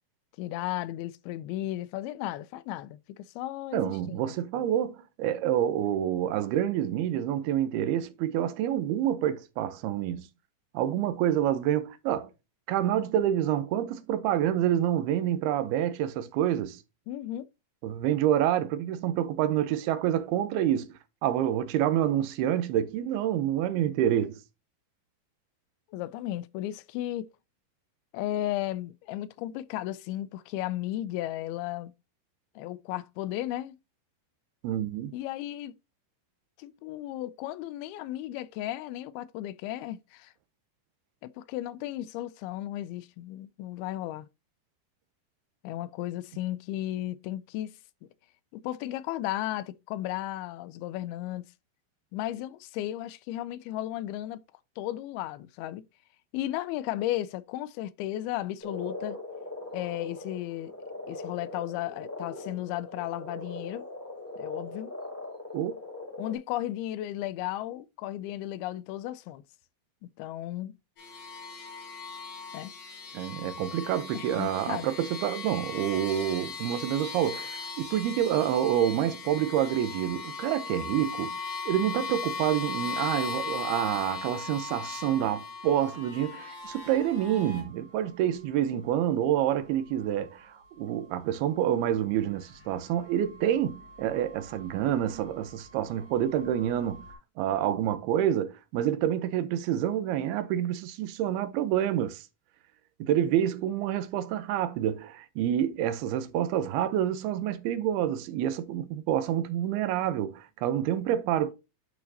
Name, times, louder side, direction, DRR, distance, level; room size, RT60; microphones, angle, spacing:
voice 1, 0.4-4.7 17.1-17.5 25.9-27.3 28.1-31.9 32.6-33.8 35.1-35.7 36.6-40.3 41.2-44.3 45.6-47.7 48.5-51.5 52.1-54.4 54.8-55.8 56.3-59.2 59.7-60.7 61.1-63.8 64.4-64.9 66.2-69.4 70.0-70.7 72.5-72.7 74.1-74.9, left 14 dB, 85° left, 2.5 m, -35 dB
voice 2, 3.7-10.2 10.7-12.3 12.7-16.8 17.8-20.9 21.2-24.4 34.6-35.1 65.5-65.7 73.1-81.4 81.7-90.5 90.8-97.1 97.4-102.2 103.0-111.5, right 11 dB, 90° right, 2.7 m, -27 dB
Frog, 58.6-66.4, left 2 dB, 5° left, 2.4 m, -40 dB
sound 1, 71.0-87.6, left 5 dB, 55° left, 5.4 m, -38 dB
sound 2, 86.6-97.1, right 1 dB, 40° left, 3.9 m, -53 dB
11.0 x 4.7 x 2.7 m
omnidirectional pair, 4.4 m